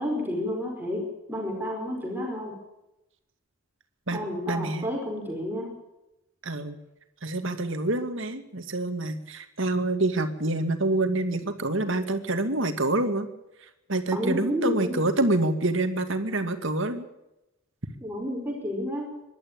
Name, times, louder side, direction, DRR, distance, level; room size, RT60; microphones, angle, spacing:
voice 1, 0.0-2.5 4.1-5.7 14.1-15.0 18.0-19.1, left 1 dB, 10° right, 0 dB, 4.8 m, -30 dB
voice 2, 4.5-4.9 6.4-6.8 7.2-13.3 13.9-17.1, right 2 dB, 60° right, 8 dB, 2.3 m, -27 dB
25.0 x 12.0 x 8.8 m, 0.92 s
head